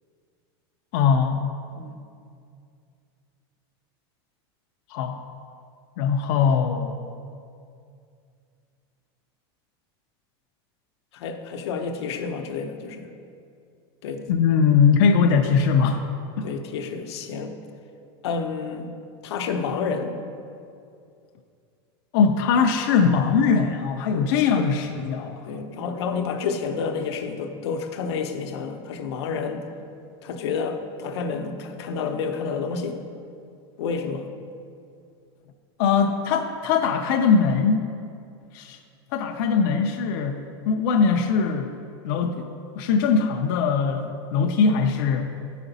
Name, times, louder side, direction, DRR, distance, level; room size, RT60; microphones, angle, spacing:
voice 1, 0.9-1.4 4.9-5.2 6.0-7.0 14.3-16.0 16.4-16.5 22.1-25.5 35.8-37.8 38.5-38.8 39.1-42.5 42.8-45.3, left 5 dB, 50° left, 3 dB, 0.4 m, -21 dB
voice 2, 11.1-13.1 14.0-14.2 16.4-17.5 18.2-18.9 19.2-20.2 24.2-24.7 25.4-29.6 30.2-33.0 33.8-34.3, left 5 dB, 85° left, 5 dB, 0.7 m, -29 dB
8.9 x 5.0 x 4.0 m, 2.4 s
supercardioid pair, 170°, 14 cm